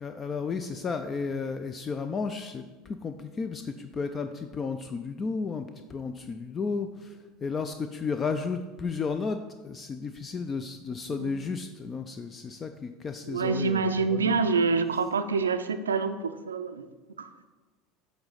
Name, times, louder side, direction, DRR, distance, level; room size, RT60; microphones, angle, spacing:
voice 1, 0.0-9.4 9.6-14.4, left 5 dB, 30° left, 8 dB, 0.3 m, -33 dB
voice 2, 13.3-16.9 17.2-17.5, right 4 dB, 85° right, 9 dB, 0.4 m, -27 dB
7.8 x 3.2 x 3.9 m, 1.2 s
hypercardioid pair, 75°, 0 cm